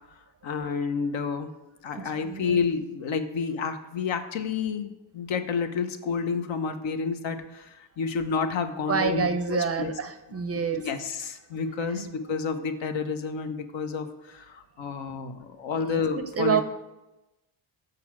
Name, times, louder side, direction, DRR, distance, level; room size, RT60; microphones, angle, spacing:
voice 1, 0.4-1.5 1.8-9.9 10.7-16.6, left 5 dB, 65° left, 8 dB, 0.9 m, -30 dB
voice 2, 2.0-2.6 8.9-10.9 11.9-12.1 15.8-16.6, right 6 dB, 30° right, 10 dB, 0.5 m, -28 dB
6.8 x 4.8 x 6.0 m, 1.0 s
cardioid pair, 100°, 48 cm